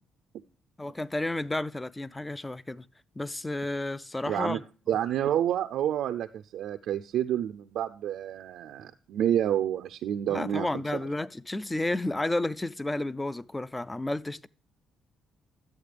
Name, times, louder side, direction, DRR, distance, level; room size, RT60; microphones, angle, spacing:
voice 1, 0.8-2.9 3.2-4.6 10.3-14.5, left 2 dB, 15° left, 0.4 m, -31 dB
voice 2, 4.3-4.6 4.9-11.0, right 10 dB, 80° right, 0.4 m, -29 dB
12.0 x 8.3 x 3.3 m
cardioid pair, 90°, 0 cm